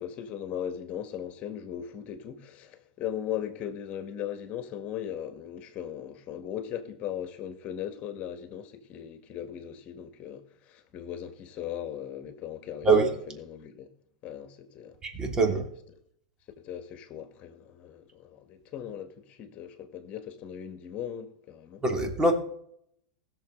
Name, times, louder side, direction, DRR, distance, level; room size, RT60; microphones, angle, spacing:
voice 1, 0.0-13.9 14.2-15.0 16.6-21.8, left 9 dB, 40° left, 1.9 m, -38 dB
voice 2, 15.0-15.7 21.8-22.3, right 3 dB, 20° right, 2.9 m, -23 dB
20.0 x 7.0 x 4.0 m
hypercardioid pair, 100°, 4 cm